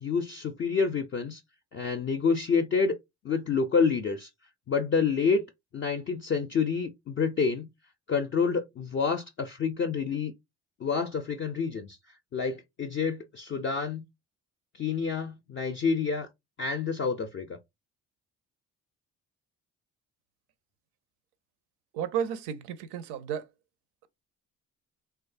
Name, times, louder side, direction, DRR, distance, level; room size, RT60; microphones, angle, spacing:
voice 1, 0.0-1.4 1.7-3.0 3.2-4.3 4.7-5.4 5.7-7.7 8.1-10.3 10.8-11.9 12.3-14.0 14.8-16.3 16.6-17.5, left 5 dB, 30° left, 0.4 m, -28 dB
voice 2, 21.9-23.5, right 8 dB, 60° right, 0.6 m, -32 dB
3.1 x 2.3 x 2.5 m
figure-of-eight pair, 45°, 46 cm